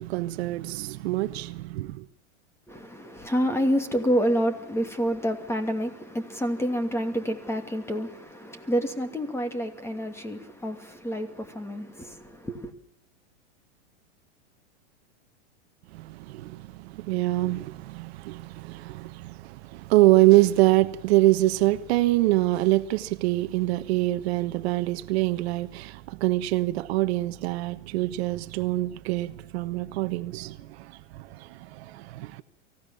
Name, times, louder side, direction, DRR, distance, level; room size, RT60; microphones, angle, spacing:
voice 1, 0.0-2.0 15.9-30.9 31.4-32.4, right 18 dB, 60° right, 1.2 m, -25 dB
voice 2, 2.7-12.7, equal, 5° left, 2.6 m, -28 dB
24.0 x 16.5 x 7.1 m
hypercardioid pair, 125°, 35 cm